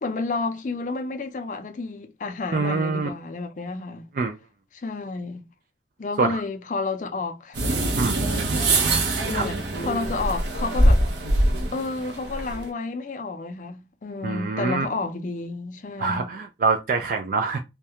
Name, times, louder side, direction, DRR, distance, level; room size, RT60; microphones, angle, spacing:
voice 1, 0.0-4.1 4.7-5.4 6.0-7.7 9.3-11.0 11.7-16.3, left 3 dB, 45° left, 0.4 m, -31 dB
voice 2, 2.5-3.1 4.1-4.3 6.2-6.4 8.0-8.3 9.3-9.5 14.2-14.9 16.0-17.6, right 4 dB, 50° right, 0.3 m, -25 dB
sound 1, 7.6-12.7, right 1 dB, 85° right, 0.6 m, -23 dB
2.3 x 2.1 x 2.8 m
head